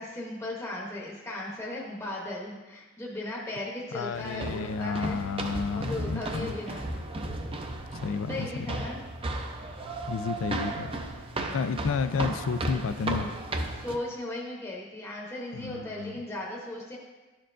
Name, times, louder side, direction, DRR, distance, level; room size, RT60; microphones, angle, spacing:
voice 1, 0.0-5.2 5.7-6.9 8.1-9.0 13.7-17.0, left 1 dB, 15° left, -4 dB, 0.8 m, -37 dB
voice 2, 3.9-6.6 7.9-8.8 10.1-13.4 15.5-16.2, left 5 dB, 65° left, 12 dB, 0.3 m, -32 dB
sound 1, 4.1-14.0, right 2 dB, 25° right, 0.4 m, -35 dB
11.5 x 4.5 x 2.5 m, 1.2 s
head